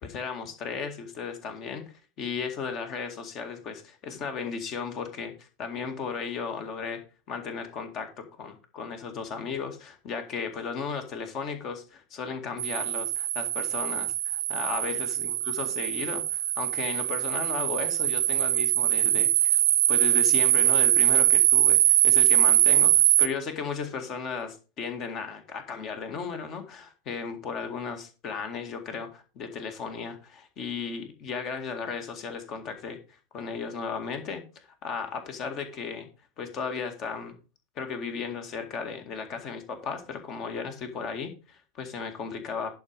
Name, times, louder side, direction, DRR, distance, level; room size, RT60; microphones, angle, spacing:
voice 1, 0.0-7.0 7.3-15.3 15.6-19.6 19.9-33.0 33.3-36.1 36.4-37.4 37.8-42.7, left 5 dB, 35° left, 7 dB, 2.0 m, -35 dB
sound 1, 12.6-23.3, right 14 dB, 55° right, 0.6 m, -22 dB
11.0 x 5.4 x 5.1 m, 0.32 s
figure-of-eight pair, 90°, 0 cm